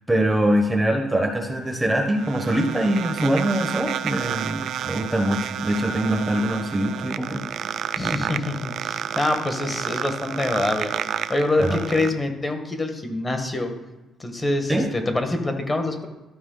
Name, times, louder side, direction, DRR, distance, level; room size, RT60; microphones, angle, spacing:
voice 1, 0.1-7.4 11.6-11.8 14.7-14.9, right 1 dB, 10° right, 4 dB, 0.9 m, -23 dB
sound 1, 1.6-12.1, right 9 dB, 70° right, 0.4 m, -30 dB
voice 2, 8.0-10.9 11.3-13.7 14.2-16.1, left 2 dB, 20° left, 5 dB, 1.3 m, -25 dB
12.5 x 4.6 x 3.8 m, 1.1 s
cardioid pair, 90°, 0 cm